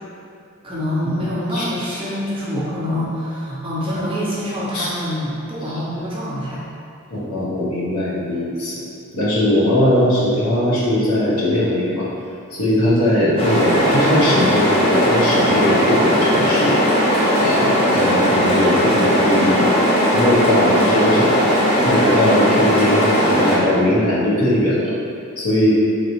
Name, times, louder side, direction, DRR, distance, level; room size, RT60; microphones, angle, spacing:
voice 1, 0.6-6.6 13.4-13.9, left 1 dB, 25° right, -8 dB, 0.7 m, -25 dB
voice 2, 7.1-8.8 9.1-12.1 12.5-16.8 17.4-19.7 20.1-21.4 21.8-24.9 25.4-25.7, left 1 dB, 80° left, -8 dB, 1.0 m, -19 dB
sound 1, 13.4-23.6, equal, 25° left, 0.6 m, -17 dB
3.8 x 3.1 x 2.8 m, 2.4 s
head